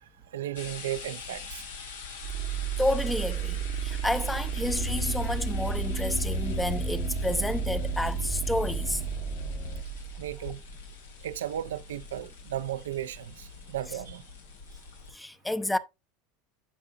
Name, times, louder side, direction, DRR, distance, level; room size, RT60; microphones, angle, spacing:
voice 1, 0.0-1.7 10.2-10.6 11.2-14.2, right 12 dB, 80° right, 0.5 m, -35 dB
sound 1, 0.5-15.1, left 5 dB, 85° left, 1.7 m, -45 dB
sound 2, 2.2-10.9, right 10 dB, 60° right, 0.9 m, -33 dB
voice 2, 2.8-9.0 15.1-15.8, left 1 dB, 5° left, 0.6 m, -30 dB
sound 3, 4.6-9.8, left 10 dB, 40° left, 1.0 m, -36 dB
9.9 x 5.6 x 2.5 m
hypercardioid pair, 90°, 0 cm